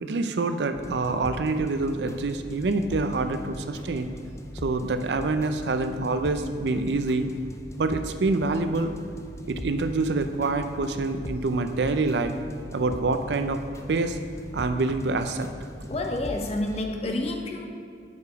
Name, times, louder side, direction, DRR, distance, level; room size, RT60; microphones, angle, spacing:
voice 1, 0.0-4.1 4.6-7.3 7.8-8.9 9.5-12.3 12.7-13.6 13.9-14.2 14.5-15.5, right 3 dB, 70° right, 8 dB, 0.5 m, -26 dB
sound 1, 0.7-16.8, left 1 dB, 15° left, 0.4 m, -40 dB
voice 2, 15.9-17.7, left 2 dB, 35° left, 2 dB, 0.8 m, -29 dB
8.3 x 4.9 x 4.7 m, 2.3 s
head